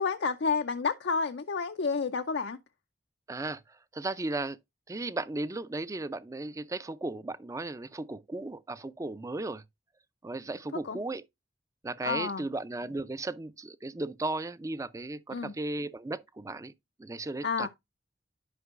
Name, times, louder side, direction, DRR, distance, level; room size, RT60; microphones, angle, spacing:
voice 1, 0.0-2.6 10.8-11.0 12.0-12.4 15.3-15.5 17.4-17.7, left 5 dB, 80° left, 0.5 m, -30 dB
voice 2, 3.3-4.6 4.9-9.6 10.2-11.2 11.8-16.7 17.0-17.7, right 2 dB, 20° right, 0.4 m, -35 dB
11.0 x 5.3 x 2.4 m
head